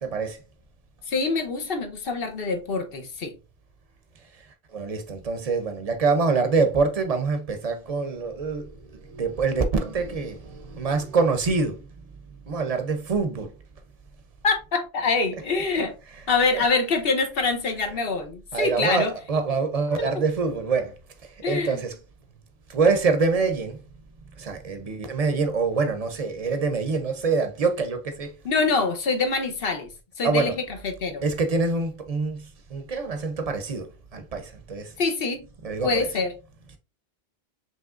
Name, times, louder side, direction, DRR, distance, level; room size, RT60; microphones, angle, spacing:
voice 1, 0.0-0.4 4.7-11.8 12.5-13.5 18.5-20.9 21.5-22.0 22.7-23.8 24.4-28.3 30.2-30.6 31.2-32.5 32.7-33.9 34.1-34.9 35.6-36.1, right 4 dB, 40° right, 0.7 m, -25 dB
voice 2, 1.1-3.3 14.4-15.9 16.3-19.1 19.9-20.2 21.4-21.8 28.4-29.9 30.2-31.2 35.0-35.4 35.8-36.3, left 4 dB, 65° left, 1.0 m, -25 dB
5.2 x 3.1 x 2.4 m
omnidirectional pair, 1.0 m